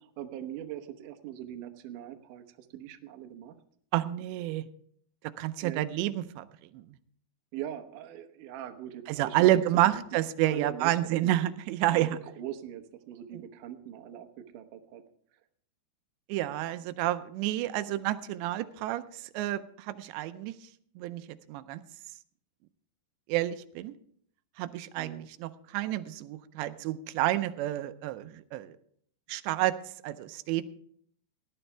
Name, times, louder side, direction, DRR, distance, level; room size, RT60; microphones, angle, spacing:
voice 1, 0.0-3.6 5.6-5.9 7.5-10.0 10.5-11.3 11.9-14.3 14.5-15.0 25.0-25.3, right 11 dB, 75° right, 6 dB, 1.9 m, -41 dB
voice 2, 3.9-4.7 5.4-6.5 6.7-7.0 9.1-12.2 16.3-20.5 21.0-21.2 21.5-21.8 23.3-23.9 24.6-28.8 29.3-29.8 30.0-30.7, right 14 dB, 90° right, 11 dB, 2.9 m, -29 dB
18.0 x 11.0 x 3.4 m, 0.63 s
omnidirectional pair, 4.9 m